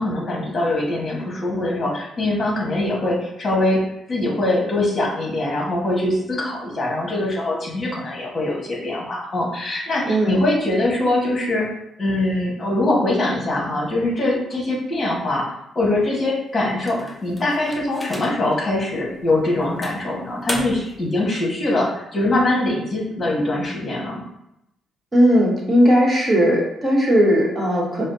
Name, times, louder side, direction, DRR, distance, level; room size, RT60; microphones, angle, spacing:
voice 1, 0.0-3.8 4.1-11.7 12.0-15.4 15.7-24.2, left 2 dB, 35° left, -3 dB, 1.4 m, -22 dB
voice 2, 10.1-10.4 25.1-28.1, equal, 30° right, -3 dB, 1.1 m, -17 dB
sound 1, 16.8-18.6 19.1-19.2 19.8-21.0, left 1 dB, 5° left, 0.7 m, -34 dB
4.8 x 2.1 x 2.7 m, 0.82 s
cardioid pair, 90°, 0 cm